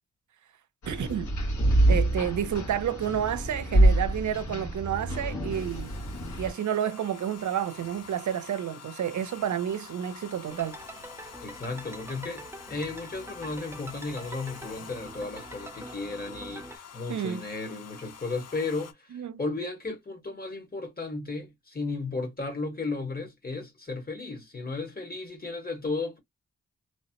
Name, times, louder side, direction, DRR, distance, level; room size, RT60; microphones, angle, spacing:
sound 1, 0.8-6.5, right 1 dB, 75° left, 1.8 m, -26 dB
voice 1, 0.9-1.3 1.9-5.9 6.4-10.8 17.1-17.4 19.1-19.4, right 9 dB, 70° right, 0.6 m, -30 dB
Domestic sounds home sounds, 5.5-18.9, left 7 dB, 55° left, 0.7 m, -47 dB
sound 2, 10.5-16.8, right 1 dB, 10° right, 0.6 m, -44 dB
voice 2, 11.2-26.2, left 3 dB, 30° left, 1.5 m, -34 dB
3.2 x 2.0 x 2.9 m
cardioid pair, 70°, 30 cm